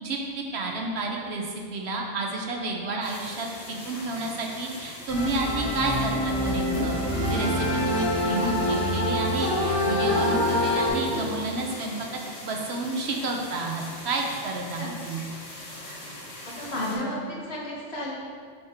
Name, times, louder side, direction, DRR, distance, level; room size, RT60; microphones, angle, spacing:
voice 1, 0.0-7.0 7.3-15.2, right 2 dB, 65° right, 1 dB, 1.0 m, -30 dB
sound 1, 3.0-16.9, left 1 dB, 75° left, 2.3 m, -42 dB
sound 2, 5.1-10.9, left 1 dB, 40° left, 1.9 m, -25 dB
sound 3, 6.4-7.4 9.3-9.4 10.4-11.6, equal, 15° right, 1.7 m, -37 dB
voice 2, 16.6-18.1, left 1 dB, 60° left, -4 dB, 1.5 m, -32 dB
5.6 x 5.1 x 4.3 m, 2.1 s
omnidirectional pair, 1.2 m